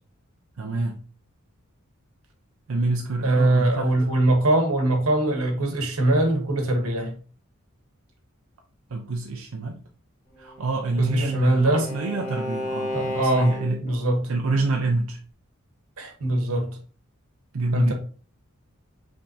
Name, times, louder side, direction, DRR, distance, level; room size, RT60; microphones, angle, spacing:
voice 1, 0.6-1.0 2.7-3.9 8.9-9.8 10.4-13.8 14.3-15.2 17.5-17.9, right 3 dB, 65° right, 1 dB, 0.5 m, -26 dB
voice 2, 3.2-7.1 11.0-11.8 12.9-13.5 13.8-14.2 16.0-16.7 17.7-17.9, right 1 dB, 90° right, 4 dB, 1.2 m, -22 dB
Bowed string instrument, 10.4-14.0, left 1 dB, 40° left, 1.0 m, -33 dB
5.3 x 3.5 x 2.7 m, 0.41 s
head